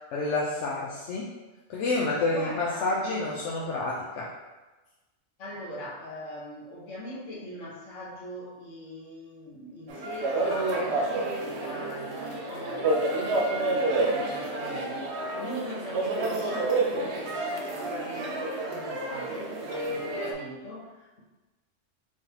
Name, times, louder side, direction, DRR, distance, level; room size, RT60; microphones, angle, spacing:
voice 1, 0.0-1.3 1.7-4.3, left 2 dB, 70° left, -4 dB, 0.9 m, -29 dB
voice 2, 2.3-3.1 5.4-15.0 15.4-18.4 18.7-21.2, equal, 85° left, -5 dB, 1.4 m, -41 dB
sound 1, 9.9-20.3, right 2 dB, 65° right, 0.9 m, -29 dB
4.7 x 3.7 x 2.8 m, 1.2 s
omnidirectional pair, 1.3 m